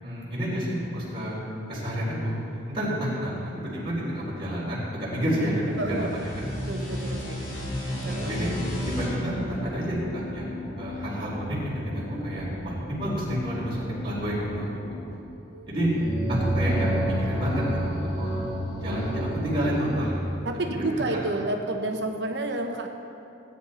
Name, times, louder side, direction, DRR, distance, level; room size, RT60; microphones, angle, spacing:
voice 1, 0.0-1.4 1.7-6.3 8.0-8.5 8.9-15.0 15.7-18.3 18.8-20.4 20.7-21.0, equal, 25° right, -8 dB, 3.6 m, -29 dB
sound 1, 5.6-11.0, equal, 45° left, 3.4 m, -34 dB
voice 2, 5.8-6.2 6.4-7.4 7.8-8.3 15.1-15.8 20.4-22.9, right 2 dB, 65° right, 3 dB, 0.9 m, -31 dB
sound 2, 8.3-15.0, left 1 dB, 75° left, 3.5 m, -39 dB
sound 3, 15.7-20.3, right 1 dB, 20° left, 2.4 m, -29 dB
17.0 x 9.5 x 4.3 m, 2.6 s
head